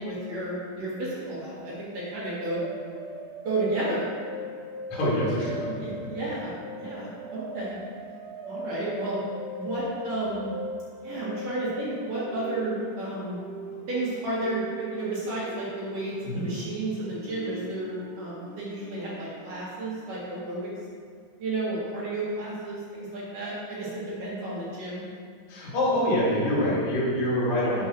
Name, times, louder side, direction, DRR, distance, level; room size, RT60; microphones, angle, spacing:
voice 1, 0.0-2.7 3.4-4.1 5.6-6.5 6.8-7.8 8.5-9.2 9.5-10.5 11.0-13.4 13.9-20.7 21.4-25.0, right 2 dB, 55° right, -8 dB, 2.7 m, -32 dB
sound 1, 2.3-19.7, right 1 dB, 70° right, 3.5 m, -40 dB
voice 2, 4.9-5.7 16.2-16.4 25.5-27.9, left 1 dB, 50° left, -7 dB, 3.6 m, -25 dB
8.9 x 5.5 x 6.2 m, 2.2 s
omnidirectional pair, 5.9 m